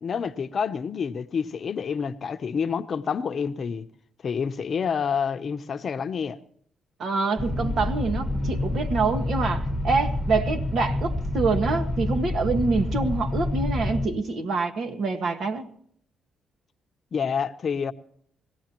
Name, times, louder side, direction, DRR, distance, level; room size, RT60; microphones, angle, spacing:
voice 1, 0.0-3.9 4.2-6.4 17.1-17.9, left 6 dB, 50° left, 0.8 m, -28 dB
voice 2, 7.0-15.7, right 3 dB, 60° right, 1.6 m, -26 dB
sound 1, 7.4-14.1, left 1 dB, 5° left, 1.3 m, -28 dB
22.0 x 16.5 x 3.0 m
cardioid pair, 90°, 0 cm